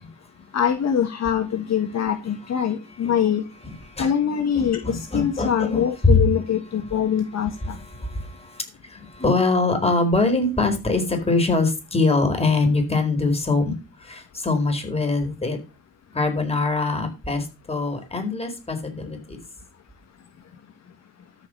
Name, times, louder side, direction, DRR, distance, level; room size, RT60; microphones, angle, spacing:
voice 1, 0.5-3.4 4.0-7.8, left 8 dB, 60° left, 6 dB, 1.8 m, -23 dB
voice 2, 4.6-6.2 7.9-8.6 8.9-13.7 14.0-15.6 16.1-19.4, left 3 dB, 20° left, 5 dB, 4.6 m, -23 dB
13.5 x 5.6 x 6.5 m, 0.29 s
cardioid pair, 90°, 30 cm